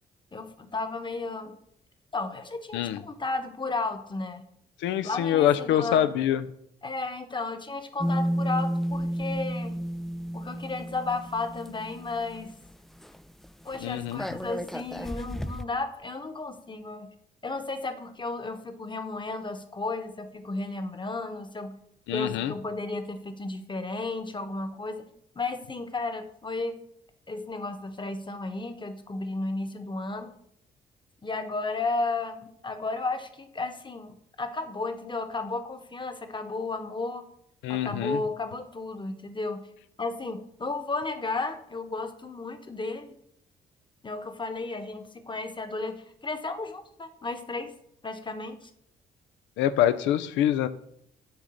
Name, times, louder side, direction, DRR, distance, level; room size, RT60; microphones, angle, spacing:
voice 1, 0.3-1.6 2.1-2.8 3.1-4.4 5.0-6.1 6.8-9.8 10.3-12.5 13.6-17.1 17.4-21.8 22.1-25.1 25.3-26.8 27.3-30.3 31.2-37.2 37.7-39.7 40.0-43.2 44.0-47.7 48.0-48.7, left 3 dB, 25° left, 7 dB, 1.1 m, -33 dB
voice 2, 4.8-6.4 13.8-14.2 22.1-22.5 37.6-38.2 49.6-50.7, left 11 dB, 75° left, 13 dB, 0.5 m, -25 dB
sound 1, 8.0-12.7 13.0-13.2 13.4-15.6, equal, ahead, 0.3 m, -32 dB
7.2 x 3.8 x 6.4 m, 0.70 s
hypercardioid pair, 50°, 20 cm